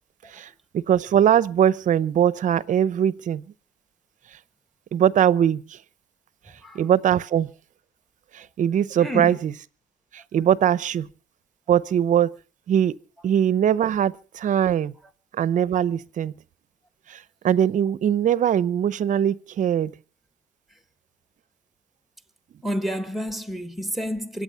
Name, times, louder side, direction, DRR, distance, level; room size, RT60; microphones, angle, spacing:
voice 1, 0.7-3.4 4.9-5.8 6.7-7.5 8.3-9.5 10.1-11.1 11.7-12.3 12.7-13.0 13.2-14.9 15.3-16.3 17.1-17.2 17.4-19.9, right 9 dB, 50° right, 0.7 m, -21 dB
voice 2, 9.0-9.4 22.6-24.4, equal, ahead, 1.6 m, -29 dB
25.0 x 8.7 x 5.6 m
cardioid pair, 110°, 17 cm